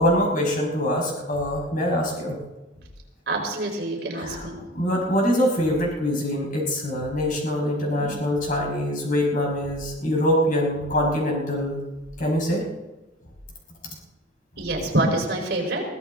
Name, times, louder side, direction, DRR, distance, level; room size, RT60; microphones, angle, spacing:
voice 1, 0.0-2.4 4.2-4.5 4.7-11.8 12.2-12.6, equal, 50° left, -1 dB, 5.7 m, -24 dB
voice 2, 3.3-4.6 14.6-15.8, right 1 dB, 65° right, 1 dB, 4.6 m, -26 dB
22.5 x 16.5 x 3.9 m, 1.1 s
head